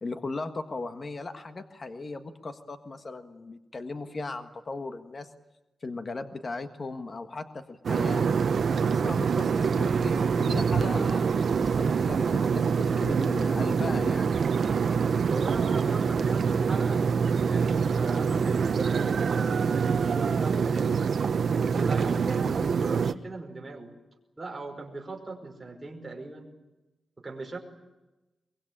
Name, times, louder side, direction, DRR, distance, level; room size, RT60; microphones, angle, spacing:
voice 1, 0.0-5.3 5.8-8.3 8.7-11.2 11.6-14.3, left 3 dB, 35° left, 8 dB, 1.6 m, -37 dB
sound 1, 7.8-23.1, right 6 dB, 60° right, 0.9 m, -25 dB
voice 2, 15.3-17.0 17.5-21.0 21.7-23.9 24.4-26.5 27.2-27.6, right 3 dB, 20° right, 0 dB, 5.4 m, -38 dB
23.5 x 23.0 x 8.9 m, 1.0 s
wide cardioid pair, 165°, 0 cm